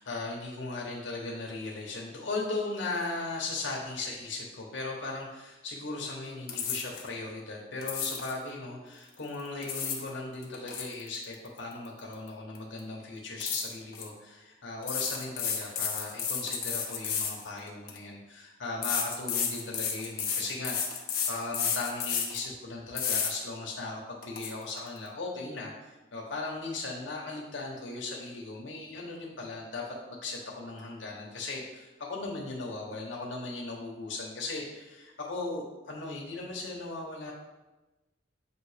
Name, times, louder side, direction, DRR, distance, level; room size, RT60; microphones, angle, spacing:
voice 1, 0.0-29.8 30.1-37.3, left 3 dB, 75° left, -2 dB, 1.0 m, -37 dB
sound 1, 6.5-7.1 7.8-8.4 9.4-10.1 10.4-12.3 12.6-12.8 13.4-14.1 14.8-18.0 18.8-22.5 23.0-23.3 23.8-23.9 24.2-24.5, left 7 dB, 50° left, 0.9 m, -32 dB
7.3 x 2.8 x 4.9 m, 1.1 s
head